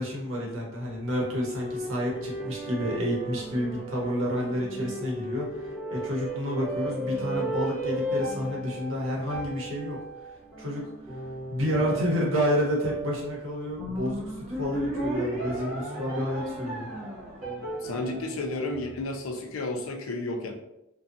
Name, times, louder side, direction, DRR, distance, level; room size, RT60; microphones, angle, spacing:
voice 1, 0.0-10.0 10.6-10.9 11.5-16.9 18.0-18.1, equal, 70° right, -2 dB, 0.8 m, -30 dB
sound 1, 0.9-19.4, right 1 dB, 35° right, 1.0 m, -35 dB
voice 2, 17.8-20.5, left 2 dB, 75° left, 3 dB, 0.4 m, -32 dB
2.6 x 2.2 x 2.5 m, 0.86 s
head